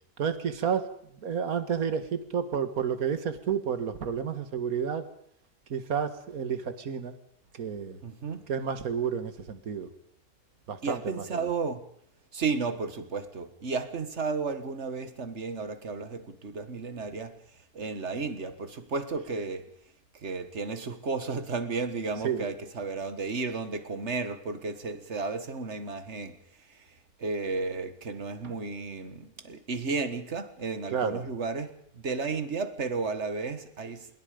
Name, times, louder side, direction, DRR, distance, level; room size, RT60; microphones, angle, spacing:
voice 1, 0.2-0.9 1.2-5.1 5.7-7.1 7.6-8.0 8.5-9.9 10.7-11.5 22.2-22.5 28.4-28.5 30.9-31.2, right 7 dB, 65° right, 2.1 m, -30 dB
voice 2, 8.0-8.4 10.8-11.8 12.3-17.3 17.7-19.7 20.1-26.4 26.7-26.9 27.2-34.1, right 4 dB, 45° right, 1.9 m, -33 dB
25.5 x 22.5 x 5.2 m
omnidirectional pair, 1.6 m